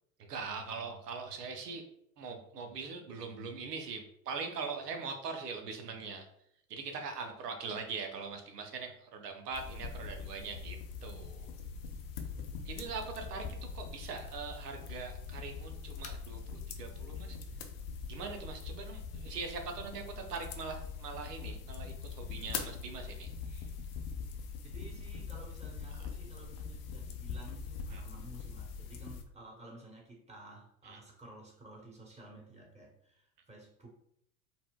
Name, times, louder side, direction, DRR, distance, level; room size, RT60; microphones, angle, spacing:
voice 1, 0.2-1.8 2.2-6.3 6.7-11.5 12.6-17.4 18.1-23.7 26.0-26.1 27.9-28.0 30.8-31.0, right 5 dB, 90° right, 4 dB, 0.7 m, -42 dB
sound 1, 9.5-29.2, left 5 dB, 50° left, 0.6 m, -43 dB
voice 2, 24.6-33.9, right 1 dB, 15° right, -1 dB, 1.1 m, -53 dB
4.2 x 2.0 x 2.3 m, 0.73 s
hypercardioid pair, 90°, 46 cm